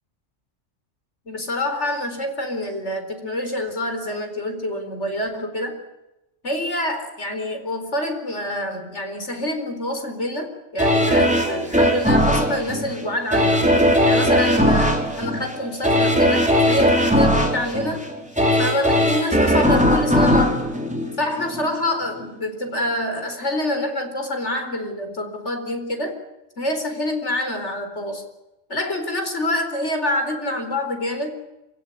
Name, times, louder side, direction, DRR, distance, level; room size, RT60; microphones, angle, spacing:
voice 1, 1.3-5.8 6.4-13.7 14.0-18.0 18.6-20.7 21.2-26.2 26.6-28.2 28.7-31.3, left 1 dB, 65° left, 6 dB, 4.7 m, -26 dB
sound 1, 10.8-21.7 22.2-22.3, equal, 5° right, 4.7 m, -19 dB
27.5 x 17.0 x 9.6 m, 0.97 s
omnidirectional pair, 1.3 m